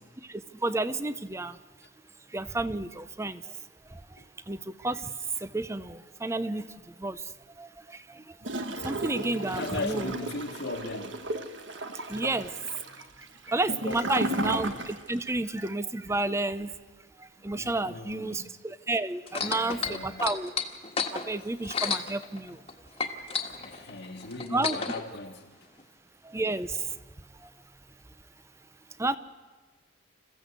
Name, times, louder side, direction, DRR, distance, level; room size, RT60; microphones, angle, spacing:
voice 1, 0.2-1.6 2.3-3.6 3.9-10.1 11.9-16.7 17.2-20.5 21.1-22.6 23.2-23.8 24.5-24.8 26.2-27.0 27.4-27.5 29.0-29.2, right 2 dB, 15° right, 0.6 m, -32 dB
Gurgling / Toilet flush, 8.4-15.3 15.6-15.7, right 1 dB, 70° right, 1.4 m, -35 dB
voice 2, 9.5-11.3 11.6-12.0 13.7-14.5 17.5-18.6 19.3-20.3 23.5-25.6, left 2 dB, 60° left, 1.4 m, -39 dB
sound 1, 19.3-22.7 23.0-25.0 25.8-25.9, left 5 dB, 30° left, 1.5 m, -31 dB
27.5 x 15.0 x 8.0 m
head